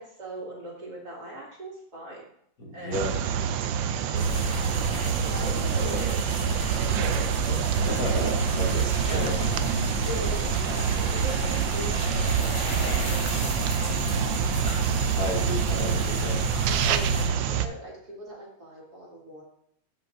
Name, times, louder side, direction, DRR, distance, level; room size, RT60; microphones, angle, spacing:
voice 1, 0.0-2.2 2.7-3.2 4.0-4.4 5.2-6.2 6.7-8.3 9.0-9.3 9.9-12.5 13.0-13.9 15.6-15.8 16.7-19.4, equal, 50° right, -5 dB, 2.9 m, -39 dB
voice 2, 2.6-3.2 7.9-9.5 15.2-16.4, equal, 50° left, -1 dB, 1.7 m, -32 dB
sound 1, 2.9-17.7, right 8 dB, 75° right, 1.3 m, -26 dB
sound 2, 4.1-17.3, left 2 dB, 80° left, 4.2 m, -32 dB
13.5 x 5.7 x 2.6 m, 0.70 s
omnidirectional pair, 2.2 m